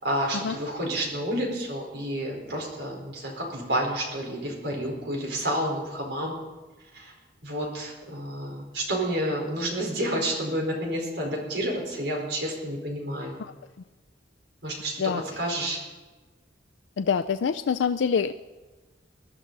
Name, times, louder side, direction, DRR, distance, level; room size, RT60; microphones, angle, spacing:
voice 1, 0.0-6.3 6.9-7.1 7.4-13.4 14.6-15.8, right 1 dB, 75° right, 0 dB, 4.4 m, -30 dB
voice 2, 17.0-18.3, left 6 dB, 85° left, 9 dB, 0.4 m, -25 dB
20.5 x 12.5 x 4.0 m, 1.3 s
head